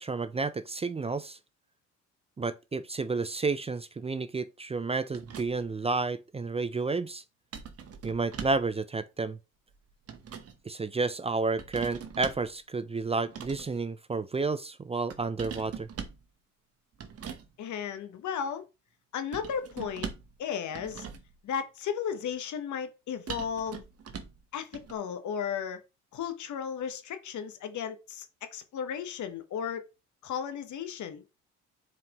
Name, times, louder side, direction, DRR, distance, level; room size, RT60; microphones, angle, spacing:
voice 1, 0.0-1.4 2.4-7.2 8.0-9.4 10.7-15.9, right 3 dB, 20° right, 0.4 m, -31 dB
sound 1, 5.1-5.8 7.5-8.7 9.7-10.6 11.6-12.5 13.2-13.8 15.1-16.3 17.0-17.5 19.3-20.4 20.7-21.4 23.3-24.4 24.7-24.9, right 7 dB, 50° right, 1.0 m, -41 dB
voice 2, 17.6-18.6 19.1-20.1 20.4-21.1 21.4-23.8 24.5-25.8 26.1-28.3 28.5-29.9 30.2-31.2, left 7 dB, 70° left, 1.1 m, -34 dB
7.1 x 4.6 x 3.0 m
cardioid pair, 90°, 30 cm